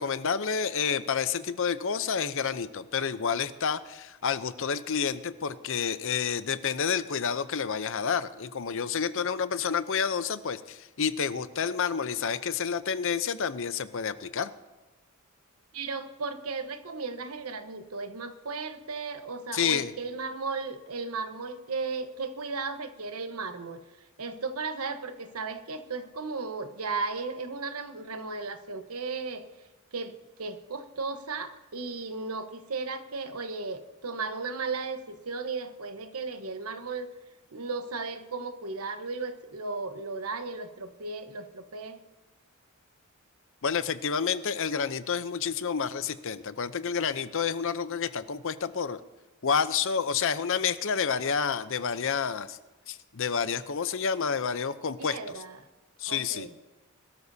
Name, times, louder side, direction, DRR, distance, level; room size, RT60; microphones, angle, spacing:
voice 1, 0.0-14.5 19.5-19.9 43.6-49.0 49.4-52.6 52.9-55.4 56.0-56.5, left 6 dB, 65° left, 13 dB, 0.7 m, -29 dB
voice 2, 15.7-23.8 24.2-29.4 29.9-37.1 37.5-42.0 55.0-55.6 56.1-56.5, right 4 dB, 90° right, 8 dB, 1.1 m, -35 dB
21.5 x 13.0 x 2.8 m, 1.2 s
head